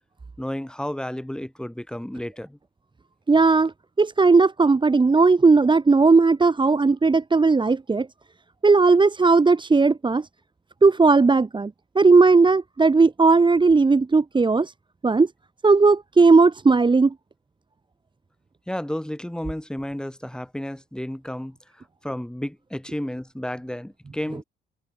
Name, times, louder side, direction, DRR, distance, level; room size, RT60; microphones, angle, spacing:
voice 1, 0.4-2.6 18.7-21.6 22.0-24.4, left 1 dB, 5° left, 7.4 m, -32 dB
voice 2, 3.3-8.1 8.6-10.3 10.8-14.7 15.0-15.3 15.6-17.1, right 4 dB, 25° right, 1.5 m, -17 dB
open air
cardioid pair, 90°, 20 cm